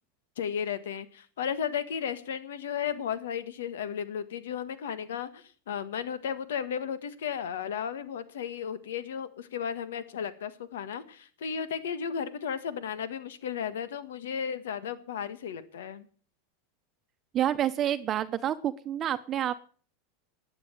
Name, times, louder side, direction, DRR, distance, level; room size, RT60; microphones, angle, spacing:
voice 1, 0.4-16.0, left 8 dB, 85° left, 14 dB, 1.5 m, -34 dB
voice 2, 17.3-19.6, right 11 dB, 35° right, 9 dB, 0.9 m, -28 dB
12.0 x 9.8 x 8.1 m, 0.43 s
supercardioid pair, 125°, 0 cm